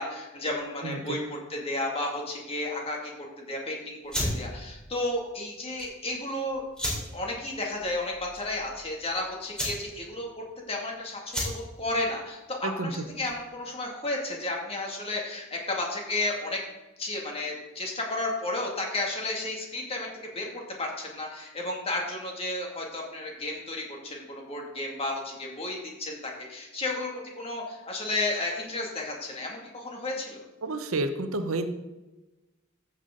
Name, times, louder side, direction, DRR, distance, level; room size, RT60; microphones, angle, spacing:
voice 1, 0.0-3.1 3.4-6.6 7.1-16.6 17.0-20.1 20.3-20.5 20.8-30.4, left 2 dB, 30° left, -1 dB, 2.4 m, -33 dB
sound 1, 4.0-13.6, equal, 5° left, 3.6 m, -36 dB
voice 2, 30.6-31.7, right 2 dB, 85° right, 9 dB, 0.9 m, -30 dB
14.5 x 7.1 x 3.9 m, 1.1 s
head